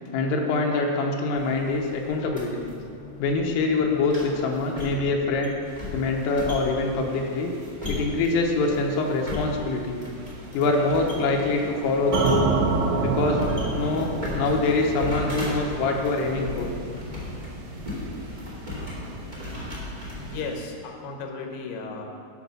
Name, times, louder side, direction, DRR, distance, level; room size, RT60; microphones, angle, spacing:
voice 1, 0.1-2.7 3.2-5.6 5.9-7.5 7.9-10.0 10.5-12.5 13.0-13.4 13.7-16.7, left 3 dB, 85° left, 1 dB, 3.5 m, -24 dB
sound 1, 1.4-20.4, left 2 dB, 25° right, 0.9 m, -37 dB
sound 2, 5.7-20.6, right 1 dB, 70° right, 3.4 m, -40 dB
sound 3, 12.1-16.2, right 5 dB, 90° right, 2.2 m, -26 dB
voice 2, 20.1-22.0, left 4 dB, 70° left, 2 dB, 2.5 m, -35 dB
12.5 x 6.1 x 5.9 m, 2.3 s
omnidirectional pair, 5.8 m